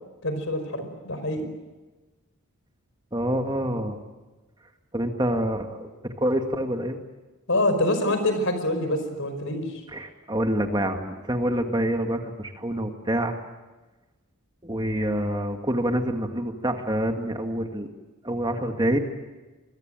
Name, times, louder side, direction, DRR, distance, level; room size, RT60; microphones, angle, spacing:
voice 1, 0.2-1.5 7.5-9.8, left 1 dB, 65° left, 9 dB, 5.2 m, -26 dB
voice 2, 3.1-4.0 4.9-5.9 6.2-7.0 9.9-13.4 14.6-17.9 18.2-19.0, right 1 dB, 20° right, 4 dB, 1.9 m, -26 dB
26.5 x 22.0 x 9.0 m, 1.2 s
head